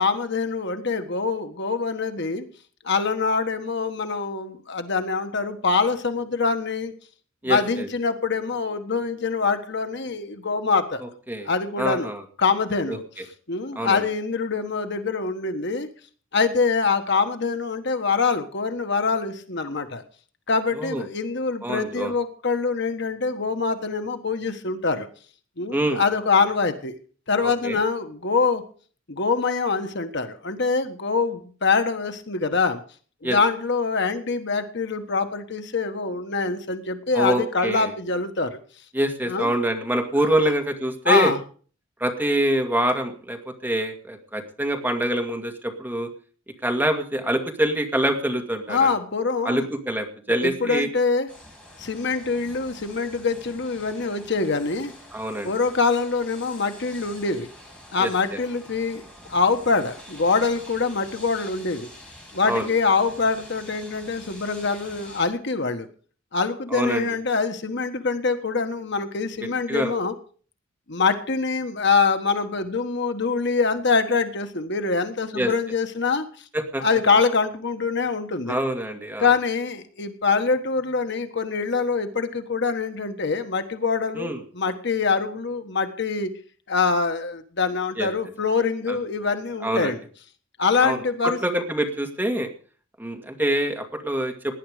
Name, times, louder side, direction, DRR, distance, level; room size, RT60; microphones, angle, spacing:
voice 1, 0.0-2.4 2.8-6.9 7.4-11.0 11.4-12.1 12.4-13.0 13.5-15.9 16.3-20.0 20.5-25.1 25.6-26.9 27.3-28.6 29.1-32.8 33.2-38.6 39.2-39.5 41.0-41.4 48.7-49.6 50.3-51.3 51.8-54.9 55.4-57.5 57.9-59.0 59.3-61.9 62.3-65.9 66.3-70.1 70.9-76.3 76.8-78.6 79.2-86.3 86.7-90.0 90.6-91.4, left 4 dB, 60° left, 8 dB, 1.5 m, -24 dB
voice 2, 7.4-7.9 11.3-11.5 11.8-12.2 12.9-13.2 13.8-14.0 20.7-21.1 21.6-22.1 25.7-26.0 27.4-27.8 33.2-33.4 37.1-37.9 38.9-41.3 42.0-46.1 46.6-48.9 49.4-50.9 55.1-55.5 58.0-58.1 62.4-62.7 66.7-67.1 69.7-69.9 75.3-75.5 76.5-76.8 78.5-79.3 84.1-84.4 88.0-88.1 88.9-89.0 89.6-89.9 90.8-92.5 93.0-94.6, right 1 dB, 10° right, 3 dB, 2.2 m, -25 dB
sound 1, 51.3-65.3, left 1 dB, 5° left, 5.8 m, -46 dB
18.0 x 10.5 x 5.1 m, 0.42 s
head